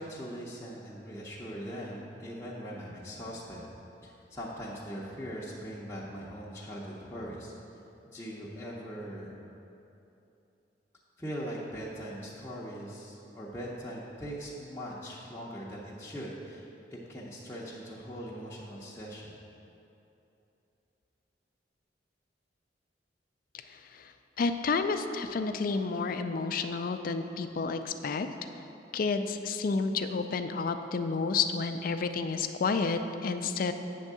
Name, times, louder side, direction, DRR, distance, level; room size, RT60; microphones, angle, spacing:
voice 1, 0.0-3.7 4.0-7.5 8.1-9.4 11.2-16.6 16.9-19.4, equal, 15° left, -8 dB, 0.7 m, -41 dB
voice 2, 23.7-24.1 24.4-28.3 28.9-33.7, left 4 dB, 50° left, 8 dB, 0.4 m, -30 dB
8.4 x 3.5 x 6.7 m, 2.8 s
head